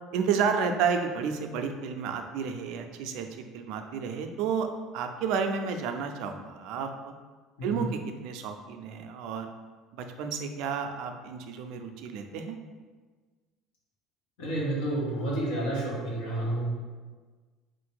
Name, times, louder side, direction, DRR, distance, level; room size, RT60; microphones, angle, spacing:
voice 1, 0.1-3.3 3.5-4.7 4.9-7.1 7.6-9.5 9.9-12.6, right 6 dB, 75° right, 6 dB, 0.4 m, -31 dB
voice 2, 7.6-7.9 14.4-16.7, right 1 dB, 90° left, -6 dB, 1.5 m, -30 dB
3.8 x 2.5 x 4.5 m, 1.4 s
supercardioid pair, 105°, 0 cm